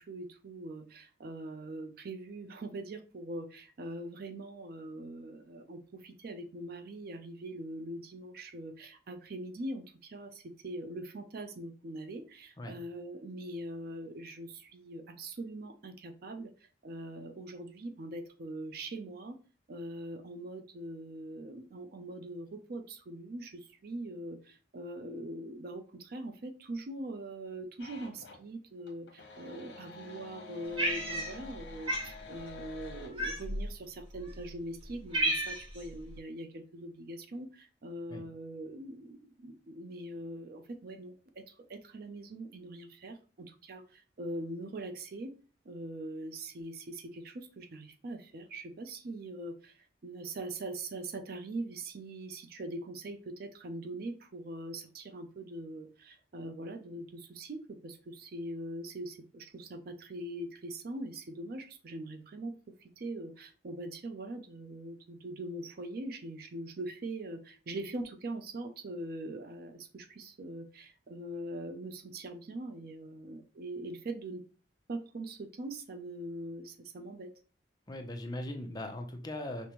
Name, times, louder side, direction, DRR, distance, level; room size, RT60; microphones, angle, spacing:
voice 1, 0.0-16.5 16.8-19.4 19.7-45.3 45.6-62.5 63.0-74.4 74.9-77.3, right 1 dB, 60° right, 8 dB, 0.5 m, -42 dB
sound 1, 27.8-28.5 28.8-33.1, left 4 dB, 80° left, 0.8 m, -49 dB
Cat, 30.8-31.6 31.9-32.1 33.2-33.7 34.4-34.5 34.8-35.8, right 1 dB, 30° right, 1.0 m, -31 dB
voice 2, 77.9-79.7, left 1 dB, 25° left, 3 dB, 0.5 m, -39 dB
5.1 x 2.1 x 2.9 m, 0.37 s
head